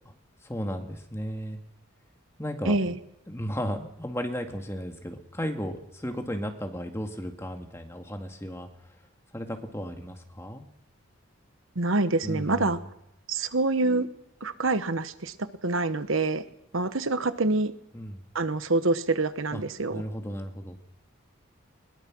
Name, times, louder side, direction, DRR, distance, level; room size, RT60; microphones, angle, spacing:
voice 1, 0.4-1.6 2.4-2.9 3.3-8.7 9.3-10.6 12.2-12.8 17.9-18.2 19.5-19.6 19.9-20.8, equal, 10° left, 4 dB, 2.1 m, -34 dB
voice 2, 2.6-3.0 11.7-12.8 13.3-14.1 14.4-16.5 16.7-17.7 18.3-20.0, right 2 dB, 70° right, 12 dB, 1.1 m, -26 dB
21.5 x 21.5 x 6.2 m, 0.79 s
head